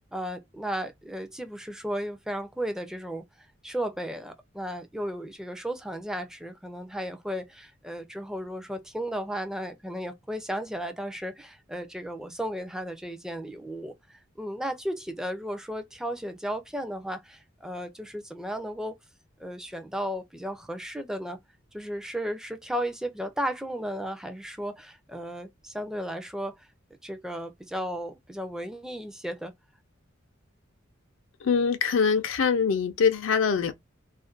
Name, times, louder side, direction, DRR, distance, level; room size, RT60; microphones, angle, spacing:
voice 1, 0.0-19.0 19.4-21.4 21.7-26.7 27.0-29.5, equal, 5° right, 0.4 m, -34 dB
voice 2, 31.4-33.7, left 6 dB, 75° left, 0.5 m, -23 dB
2.4 x 2.1 x 2.4 m
head